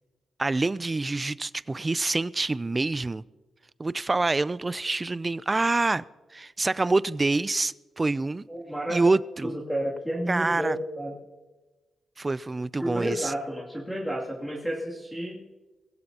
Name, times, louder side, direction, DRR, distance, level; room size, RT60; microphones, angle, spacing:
voice 1, 0.4-3.2 3.8-6.0 6.3-8.4 8.9-9.5 10.3-10.8 12.2-13.3, right 3 dB, 25° right, 19 dB, 0.4 m, -26 dB
voice 2, 8.5-9.1 9.4-11.1 12.8-15.4, right 1 dB, ahead, -5 dB, 2.6 m, -31 dB
22.0 x 16.5 x 2.9 m, 1.2 s
cardioid pair, 90°, 0 cm